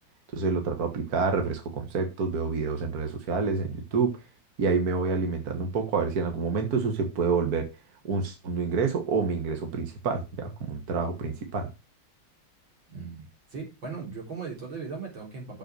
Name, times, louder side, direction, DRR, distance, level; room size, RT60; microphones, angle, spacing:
voice 1, 0.3-4.1 4.6-7.7 8.0-11.7, right 5 dB, 55° right, 5 dB, 1.9 m, -28 dB
voice 2, 12.9-13.2 13.5-15.6, right 4 dB, 90° right, -1 dB, 4.4 m, -38 dB
6.8 x 6.2 x 6.2 m, 0.27 s
omnidirectional pair, 2.1 m